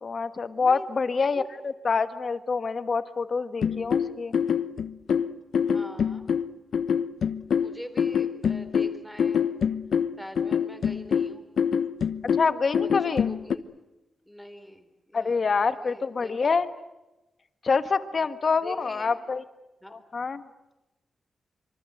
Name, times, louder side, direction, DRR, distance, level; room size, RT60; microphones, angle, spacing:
voice 1, 0.0-4.3 12.4-13.3 15.1-16.7 17.6-19.4 19.9-20.5, left 4 dB, 45° left, 10 dB, 1.5 m, -26 dB
sound 1, 3.6-13.6, left 7 dB, 80° left, 1.0 m, -25 dB
voice 2, 5.7-6.2 7.6-9.5 10.2-11.5 13.0-13.7 14.3-15.4 15.7-16.4 18.1-18.3 18.6-19.2 19.8-20.0, equal, 5° left, 7 dB, 3.5 m, -43 dB
26.0 x 24.5 x 7.9 m, 1.0 s
wide cardioid pair, 130°, 0 cm